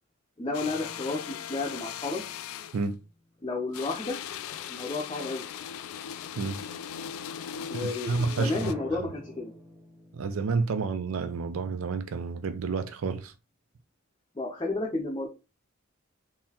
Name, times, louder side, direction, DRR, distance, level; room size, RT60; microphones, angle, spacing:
voice 1, 0.4-2.2 3.4-4.2 4.7-5.5 7.7-9.5 14.3-15.3, left 3 dB, 20° left, 0.6 m, -32 dB
sound 1, 0.5-2.9 3.7-8.7, left 9 dB, 80° left, 0.3 m, -39 dB
sound 2, 0.6-3.7 8.6-12.2, left 1 dB, 10° right, 0.8 m, -48 dB
voice 2, 7.7-8.6 10.1-13.3, right 4 dB, 75° right, 0.4 m, -30 dB
3.8 x 2.7 x 2.8 m
head